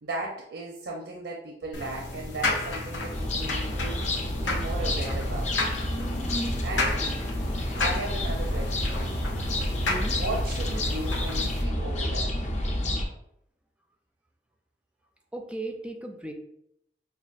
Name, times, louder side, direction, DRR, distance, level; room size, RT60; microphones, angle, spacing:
voice 1, 0.0-4.0 4.4-5.5 6.3-7.0 7.8-9.2 9.6-9.7 10.1-12.4, right 2 dB, 80° right, -1 dB, 0.6 m, -36 dB
sound 1, 1.7-11.6, left 2 dB, 90° left, 0.7 m, -32 dB
sound 2, 3.1-13.0, left 1 dB, 40° left, 0.6 m, -29 dB
voice 2, 9.9-10.2 15.3-16.3, right 1 dB, 5° right, 3 dB, 0.4 m, -36 dB
5.3 x 2.3 x 2.4 m, 0.77 s
head